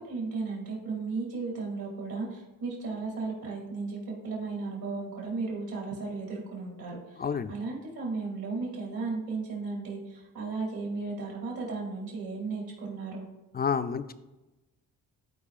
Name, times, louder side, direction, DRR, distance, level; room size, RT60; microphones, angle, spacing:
voice 1, 0.1-13.2, right 4 dB, 70° right, -3 dB, 2.7 m, -35 dB
voice 2, 7.2-7.5 13.5-14.1, left 6 dB, 30° left, 11 dB, 0.3 m, -29 dB
13.0 x 4.8 x 2.5 m, 1.1 s
cardioid pair, 85°, 37 cm